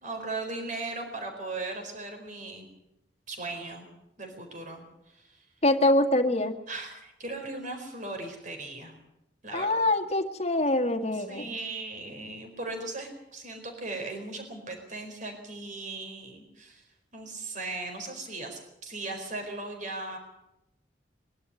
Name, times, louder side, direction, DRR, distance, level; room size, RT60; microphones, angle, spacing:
voice 1, 0.0-2.7 3.3-3.9 4.2-5.4 6.7-9.0 9.4-9.7 11.1-16.8 17.1-20.2, right 2 dB, 45° right, 4 dB, 4.5 m, -38 dB
voice 2, 5.6-6.5 9.5-11.5, left 1 dB, 35° left, 3 dB, 1.8 m, -24 dB
22.0 x 12.0 x 9.7 m, 0.88 s
head